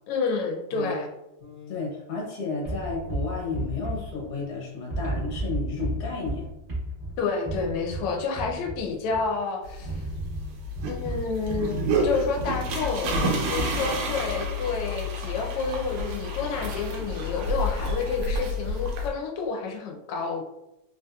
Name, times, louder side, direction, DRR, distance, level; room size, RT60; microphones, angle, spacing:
voice 1, 0.1-1.1 7.2-10.0 10.9-20.4, left 4 dB, 90° left, 2 dB, 1.5 m, -29 dB
voice 2, 1.4-6.5, left 4 dB, 55° left, -3 dB, 1.5 m, -32 dB
sound 1, 2.6-4.6 4.9-9.4 9.8-11.8, right 2 dB, 40° right, 0.7 m, -33 dB
sound 2, 9.6-19.1, equal, 90° right, 1.6 m, -29 dB
3.9 x 2.7 x 2.2 m, 0.91 s
omnidirectional pair, 2.4 m